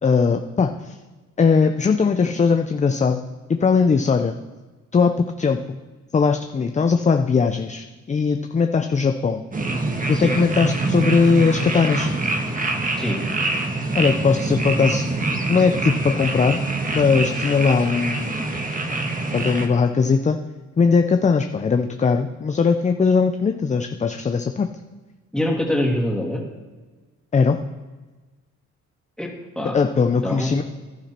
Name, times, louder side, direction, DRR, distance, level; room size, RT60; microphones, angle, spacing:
voice 1, 0.0-1.0 1.4-3.2 3.5-4.3 4.9-5.8 6.1-9.4 10.1-12.1 13.9-15.1 15.5-16.6 16.9-18.3 19.3-20.4 20.8-24.7 27.3-27.6 29.7-30.6, left 5 dB, 25° left, 7 dB, 0.6 m, -19 dB
sound 1, 9.5-19.7, right 2 dB, 25° right, 1.5 m, -25 dB
voice 2, 25.3-26.4 29.2-29.3 29.6-29.8 30.2-30.6, left 1 dB, ahead, -1 dB, 2.6 m, -24 dB
11.5 x 10.0 x 4.3 m, 1.3 s
cardioid pair, 90°, 30 cm